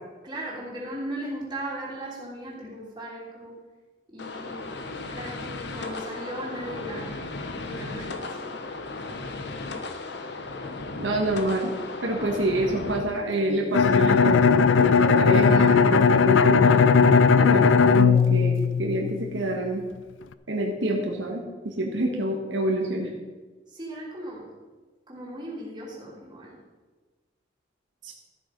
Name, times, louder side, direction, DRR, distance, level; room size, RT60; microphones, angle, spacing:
voice 1, 0.2-3.5 4.1-4.8 5.1-7.2 7.5-8.6 23.7-24.6 25.1-26.6, right 1 dB, 25° right, -5 dB, 3.4 m, -37 dB
sound 1, 4.2-13.0, left 3 dB, 60° left, 1.1 m, -35 dB
voice 2, 11.0-11.7 12.0-16.8 17.4-17.6 17.9-19.8 20.5-23.1 28.0-28.1, right 1 dB, 75° right, 0 dB, 1.6 m, -27 dB
Bowed string instrument, 13.7-19.4, left 5 dB, 80° left, 0.5 m, -18 dB
13.5 x 7.7 x 5.3 m, 1.3 s
head